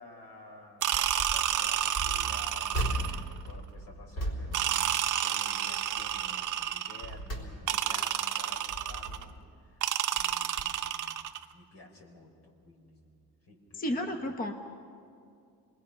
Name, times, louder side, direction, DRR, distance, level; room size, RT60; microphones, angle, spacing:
voice 1, 0.0-14.5, left 2 dB, 80° left, 0 dB, 4.3 m, -52 dB
sound 1, 0.8-1.5 1.9-5.6 5.9-6.3 6.8-8.0 8.5-9.5 10.2-10.3 10.6-10.7, right 1 dB, 55° left, 3.9 m, -37 dB
sound 2, 0.8-3.4 4.5-7.1 7.7-9.2 9.8-11.4, right 11 dB, 50° right, 0.7 m, -30 dB
voice 2, 13.7-14.5, left 1 dB, 20° left, 5 dB, 1.0 m, -32 dB
27.5 x 20.5 x 5.7 m, 2.4 s
cardioid pair, 170°, 38 cm